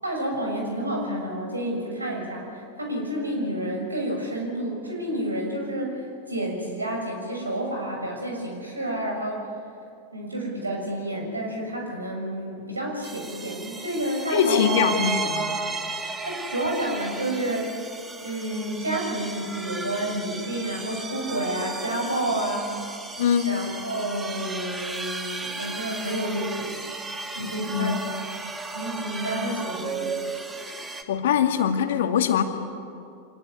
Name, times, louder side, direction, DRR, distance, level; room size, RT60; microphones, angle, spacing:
voice 1, 0.0-9.4 10.1-14.8 16.2-17.7 18.2-22.7 23.4-26.8 27.3-28.2 28.7-30.2, right 1 dB, 80° right, 1 dB, 6.6 m, -30 dB
sound 1, 13.0-31.0, right 3 dB, 15° right, 2.0 m, -34 dB
voice 2, 14.3-15.5 23.2-23.5 27.4-28.0 31.1-32.4, left 8 dB, 60° left, 6 dB, 2.1 m, -23 dB
26.0 x 18.5 x 9.6 m, 2.4 s
figure-of-eight pair, 90°, 0 cm